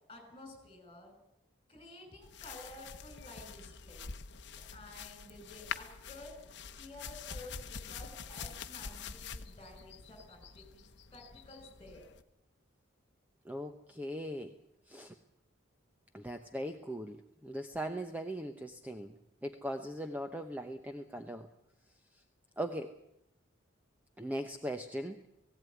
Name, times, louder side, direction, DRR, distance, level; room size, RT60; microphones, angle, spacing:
voice 1, 0.1-1.1 1.7-4.1 4.5-6.4 6.8-10.9 11.1-12.0, left 1 dB, 25° left, 5 dB, 6.0 m, -52 dB
sound 1, 2.2-12.2, left 6 dB, 55° left, 1.0 m, -46 dB
voice 2, 13.5-14.5 14.9-15.1 16.1-17.2 17.4-19.1 19.4-21.5 22.6-22.9 24.2-25.2, equal, 10° right, 6 dB, 0.9 m, -39 dB
18.0 x 17.0 x 9.4 m, 0.79 s
head